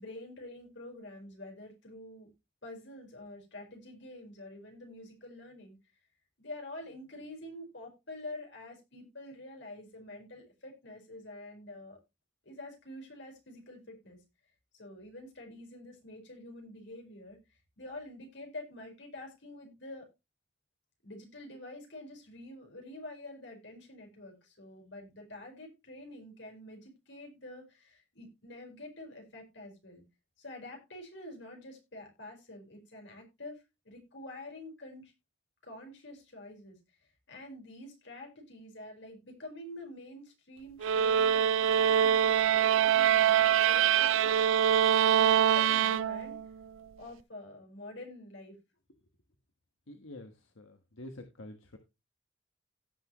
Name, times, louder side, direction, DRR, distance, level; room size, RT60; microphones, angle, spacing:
voice 1, 0.0-2.3 2.6-5.8 6.4-12.0 12.4-14.2 14.7-17.4 17.8-20.1 21.0-30.0 30.4-35.1 35.6-44.1 45.1-46.4 47.0-48.6, left 1 dB, 65° left, 2 dB, 4.9 m, -47 dB
sound 1, 40.8-46.5, right 9 dB, 85° right, 0.4 m, -24 dB
voice 2, 49.9-51.8, left 1 dB, 90° left, 5 dB, 1.4 m, -48 dB
17.0 x 6.1 x 3.1 m, 0.25 s
head